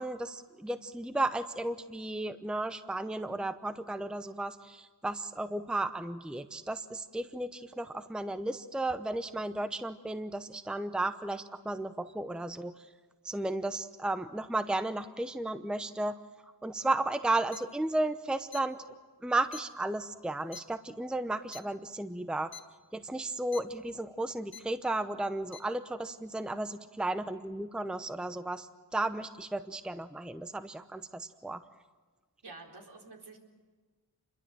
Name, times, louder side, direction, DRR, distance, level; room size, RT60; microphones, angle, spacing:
voice 1, 0.0-12.7 13.2-16.1 16.6-18.8 19.2-22.5 22.9-31.6, right 2 dB, ahead, 10 dB, 0.8 m, -34 dB
sound 1, 17.5-17.6 18.5-18.6 19.5-19.6 20.5-20.6 21.5-21.6 22.5-22.6 23.5-23.6 24.5-24.6 25.5-25.6, left 8 dB, 65° left, 1.5 m, -44 dB
voice 2, 32.4-33.4, right 3 dB, 70° right, 1 dB, 4.4 m, -49 dB
27.5 x 22.5 x 7.7 m, 1.4 s
wide cardioid pair, 85°, 40 cm